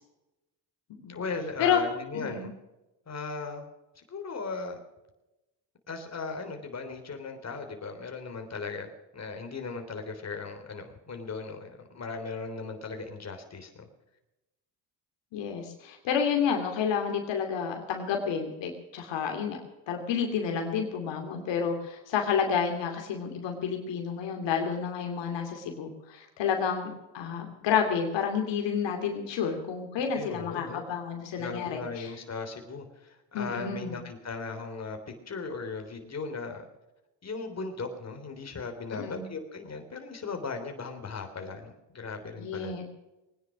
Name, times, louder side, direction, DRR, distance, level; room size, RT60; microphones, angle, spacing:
voice 1, 1.1-2.5 3.1-3.6 3.9-4.8 5.9-13.9 30.1-30.8 31.3-36.7 37.2-42.7, left 4 dB, 35° left, 5 dB, 3.4 m, -37 dB
voice 2, 2.1-2.5 15.3-19.6 19.9-32.1 33.3-34.0 38.9-39.2 42.4-42.9, left 7 dB, 70° left, 3 dB, 2.7 m, -30 dB
21.5 x 10.0 x 6.1 m, 0.99 s
supercardioid pair, 75°, 45 cm